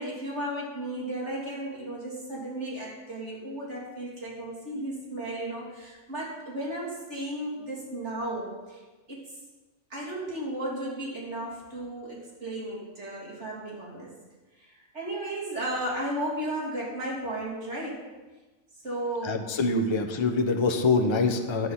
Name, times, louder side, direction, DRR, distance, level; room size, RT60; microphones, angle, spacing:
voice 1, 0.0-8.8 9.1-9.2 9.9-14.1 14.6-18.1 18.8-19.4, right 1 dB, 55° right, -5 dB, 3.5 m, -34 dB
voice 2, 19.2-21.7, left 3 dB, 25° left, 5 dB, 0.7 m, -25 dB
10.5 x 8.2 x 5.7 m, 1.2 s
omnidirectional pair, 1.4 m